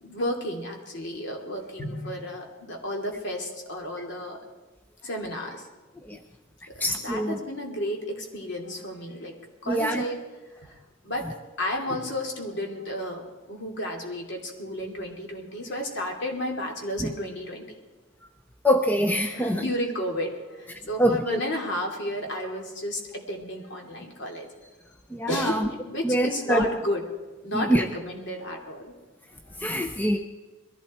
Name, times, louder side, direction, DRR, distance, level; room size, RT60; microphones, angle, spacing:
voice 1, 0.0-4.4 5.0-5.7 7.0-9.4 9.6-10.2 10.7-10.8 11.0-17.8 19.3-24.5 25.3-27.1 27.4-28.9, left 1 dB, 55° left, 1 dB, 2.9 m, -32 dB
voice 2, 6.8-7.4 9.7-10.0 17.0-17.1 18.6-19.6 21.0-21.4 25.1-25.7 26.0-26.7 27.5-27.8 29.6-30.2, equal, 10° left, 6 dB, 0.6 m, -24 dB
22.0 x 15.5 x 4.4 m, 1.2 s
head